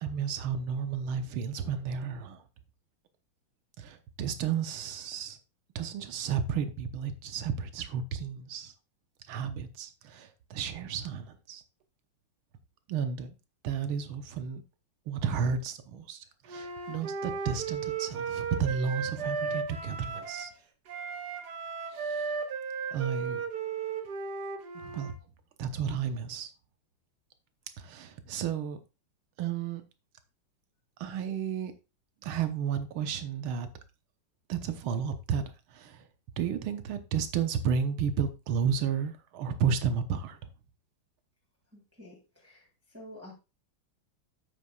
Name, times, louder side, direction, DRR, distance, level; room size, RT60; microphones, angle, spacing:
voice 1, 0.0-2.4 3.8-5.4 5.8-8.7 9.3-11.6 12.9-13.3 13.6-14.6 15.1-20.5 21.9-22.3 22.9-23.4 24.8-25.1 25.6-26.5 27.8-28.8 29.4-29.8 31.0-31.7 32.2-33.7 34.5-36.0 36.4-40.4, right 7 dB, 80° right, 1.7 m, -32 dB
Wind instrument woodwind instrument, 16.5-20.5 20.9-25.1, right 5 dB, 55° right, 1.5 m, -35 dB
voice 2, 41.7-42.7 42.9-43.3, left 1 dB, 5° right, 2.1 m, -49 dB
9.2 x 8.5 x 2.3 m
omnidirectional pair, 2.3 m